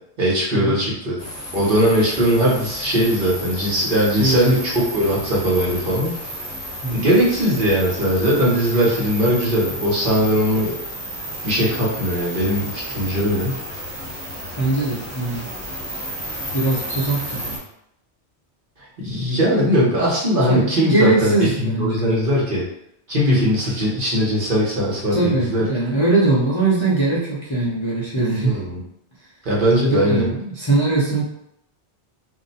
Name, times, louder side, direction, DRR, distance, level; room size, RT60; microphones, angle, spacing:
voice 1, 0.2-1.2 1.5-6.1 6.9-10.7 11.4-13.6 19.0-22.6 23.1-25.6 28.4-28.8 29.4-30.3, equal, 55° right, -5 dB, 1.1 m, -19 dB
sound 1, 1.2-17.6, equal, 5° left, 1.0 m, -32 dB
voice 2, 4.2-4.6 6.8-7.3 14.6-15.5 16.5-17.6 20.5-22.2 25.1-28.6 29.9-31.3, right 2 dB, 30° left, -8 dB, 0.6 m, -21 dB
2.6 x 2.1 x 4.0 m, 0.77 s
omnidirectional pair, 1.1 m